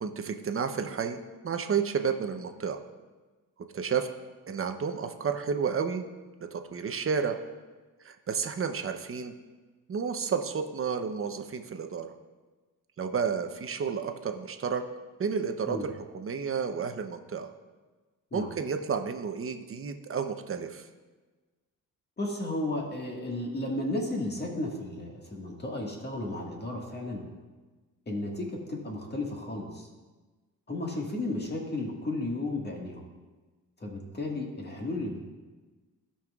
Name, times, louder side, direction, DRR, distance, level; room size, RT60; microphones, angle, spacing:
voice 1, 0.0-2.8 3.7-4.1 4.5-6.0 6.5-7.4 8.0-9.3 9.9-12.1 13.0-14.8 15.2-17.5 18.3-20.9, right 6 dB, 35° right, 6 dB, 0.8 m, -31 dB
voice 2, 22.2-27.2 28.1-29.9 30.7-33.0 33.8-35.2, left 2 dB, 30° left, -1 dB, 1.8 m, -33 dB
16.5 x 5.6 x 2.4 m, 1.3 s
cardioid pair, 95°, 36 cm